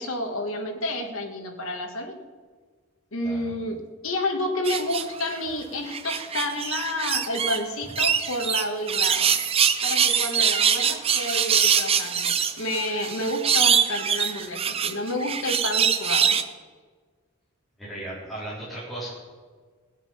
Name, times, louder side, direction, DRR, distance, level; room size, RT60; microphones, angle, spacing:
voice 1, 0.0-2.2 3.1-9.3 9.8-16.4, left 1 dB, 65° left, 4 dB, 1.6 m, -30 dB
sound 1, 4.6-5.4 5.9-7.6 8.0-16.4, right 7 dB, 25° right, 0.5 m, -23 dB
voice 2, 17.8-19.1, right 1 dB, ahead, -9 dB, 4.0 m, -36 dB
18.5 x 7.3 x 5.5 m, 1.5 s
head